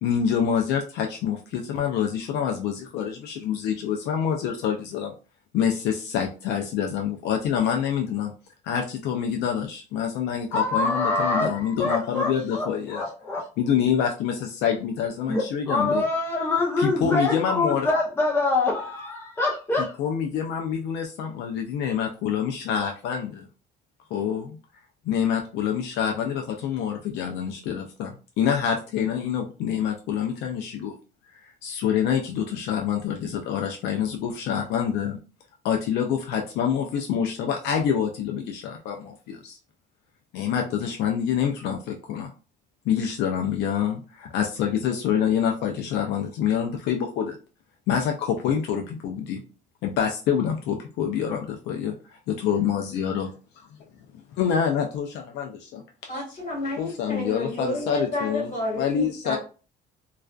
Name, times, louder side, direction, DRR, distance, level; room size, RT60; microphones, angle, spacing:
voice 1, 0.0-5.1 5.5-8.3 8.6-13.0 13.6-16.0 16.8-17.9 19.8-23.5 24.1-24.6 25.1-30.9 31.4-35.2 35.6-39.6 40.3-42.3 42.9-47.4 47.9-49.4 49.8-51.4 51.7-51.9 52.4-53.3 53.6-53.8 54.3-56.1 56.8-59.4, left 8 dB, 80° left, 2 dB, 0.4 m, -26 dB
voice 2, 10.5-13.4 15.3-19.9, left 2 dB, 15° left, -2 dB, 0.6 m, -25 dB
voice 3, 56.1-59.4, left 1 dB, 50° left, -1 dB, 1.4 m, -30 dB
2.4 x 2.3 x 2.2 m, 0.36 s
cardioid pair, 110°, 17 cm